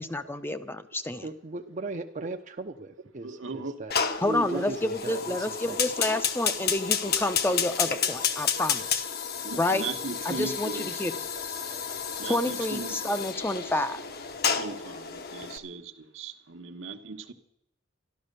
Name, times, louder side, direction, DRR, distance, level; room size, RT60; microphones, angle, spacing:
voice 1, 0.0-1.2 4.2-9.1 9.6-9.8 10.3-11.2 12.2-14.0, left 1 dB, 10° left, 9 dB, 0.6 m, -29 dB
voice 2, 1.2-3.9 4.3-5.8, right 2 dB, 40° right, 5 dB, 0.6 m, -38 dB
voice 3, 3.2-3.8 4.4-4.7 5.5-5.8 7.0-7.2 7.5-7.6 7.9-8.1 9.4-10.9 12.2-13.1 14.6-17.3, right 3 dB, 75° right, 6 dB, 1.2 m, -38 dB
Fire, 3.9-15.6, left 7 dB, 50° left, 1.0 m, -31 dB
Subway metro underground, 9.3-15.0, left 1 dB, 75° left, 5.2 m, -54 dB
12.5 x 12.0 x 6.7 m, 0.80 s
head